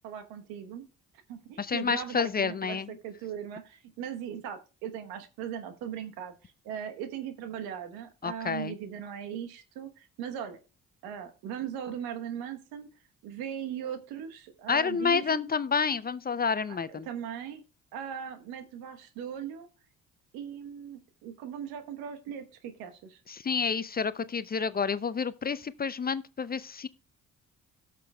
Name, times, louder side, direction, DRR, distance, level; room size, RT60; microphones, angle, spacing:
voice 1, 0.0-0.9 1.3-10.6 11.0-12.9 13.2-15.5 16.7-17.6 17.9-19.7 20.3-23.2, right 9 dB, 85° right, 1.1 m, -39 dB
voice 2, 1.6-2.9 8.2-8.7 14.7-17.1 23.3-26.9, left 5 dB, 25° left, 0.5 m, -29 dB
17.5 x 6.0 x 2.2 m
hypercardioid pair, 50°, 36 cm